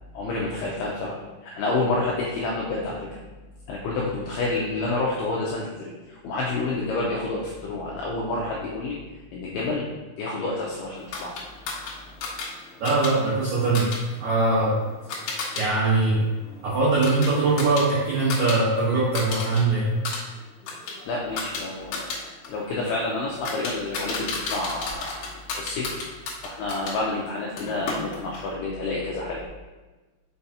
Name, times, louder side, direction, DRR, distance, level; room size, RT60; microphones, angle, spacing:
voice 1, 0.1-3.2 3.7-9.0 9.3-9.9 10.1-11.3 21.1-22.2 22.5-25.3 25.5-25.9 26.4-29.4, left 2 dB, 85° left, -3 dB, 2.3 m, -29 dB
sound 1, 11.1-15.6 16.0-18.6 18.9-19.6 19.9-27.0 27.6-28.5, left 4 dB, 65° left, 2.4 m, -34 dB
voice 2, 12.8-13.9 14.2-14.8 15.5-16.3 16.6-19.9, right 3 dB, 80° right, -8 dB, 1.6 m, -22 dB
6.7 x 5.6 x 2.9 m, 1.2 s
omnidirectional pair, 5.5 m